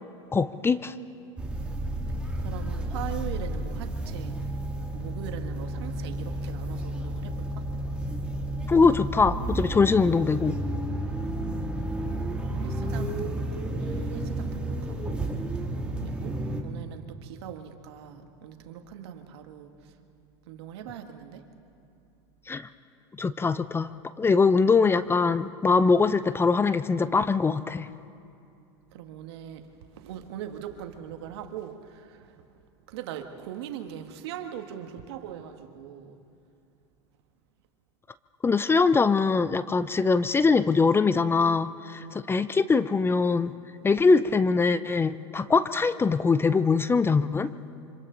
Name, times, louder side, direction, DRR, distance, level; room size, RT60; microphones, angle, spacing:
voice 1, 0.3-0.9 8.7-10.6 22.5-22.7 23.2-23.9 24.2-27.9 38.4-43.5 43.8-47.5, left 4 dB, 15° left, 14 dB, 0.5 m, -22 dB
sound 1, 1.4-16.6, right 1 dB, 5° right, 2.2 m, -31 dB
voice 2, 2.4-4.3 4.9-7.4 12.5-15.3 16.0-16.4 16.6-19.7 20.5-21.5 28.9-29.6 29.9-32.4 32.9-36.2 42.0-42.2, right 9 dB, 70° right, 6 dB, 1.6 m, -41 dB
26.5 x 25.5 x 3.9 m, 2.6 s
hypercardioid pair, 95°, 14 cm